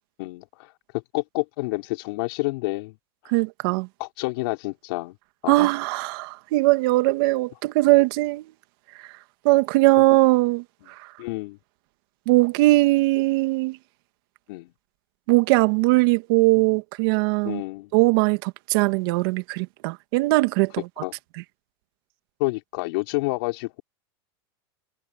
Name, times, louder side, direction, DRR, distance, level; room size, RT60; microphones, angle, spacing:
voice 1, 0.2-0.7 1.1-3.0 4.0-5.1 5.4-5.5 11.2-11.6 14.5-14.7 17.4-17.9 21.0-21.1 22.4-23.8, left 24 dB, 65° left, 4.5 m, -29 dB
voice 2, 3.3-3.9 5.5-8.5 9.4-10.6 12.3-13.8 15.3-17.6 17.9-20.9, right 21 dB, 60° right, 2.0 m, -20 dB
supercardioid pair, 130°, 13 cm